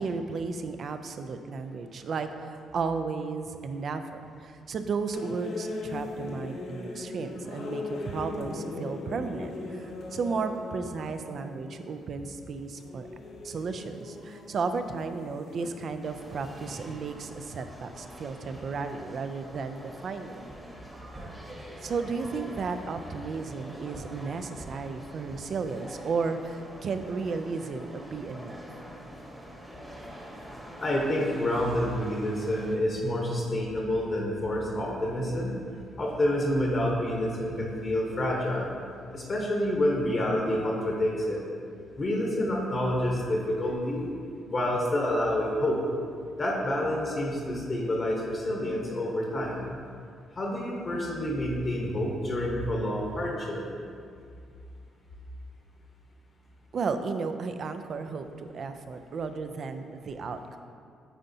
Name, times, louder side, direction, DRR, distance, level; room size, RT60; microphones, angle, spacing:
voice 1, 0.0-13.1 13.4-20.4 21.8-28.6 56.7-60.6, right 4 dB, 55° right, 8 dB, 0.4 m, -34 dB
sound 1, 5.1-17.0, left 2 dB, 70° left, 0.8 m, -40 dB
sound 2, 16.0-32.8, equal, 5° right, 1.0 m, -45 dB
sound 3, 20.4-20.6 21.1-21.2 21.8-21.9 22.5-22.6 23.2-23.3 23.9-24.0 24.5-24.7 25.1-25.4, right 2 dB, 30° right, 1.1 m, -46 dB
voice 2, 30.8-35.6 36.0-38.8 39.1-41.4 42.0-44.1 44.5-45.8 46.4-49.8 50.3-53.6, left 1 dB, 40° left, -2 dB, 0.9 m, -28 dB
8.9 x 4.0 x 2.7 m, 2.3 s
cardioid pair, 90°, 0 cm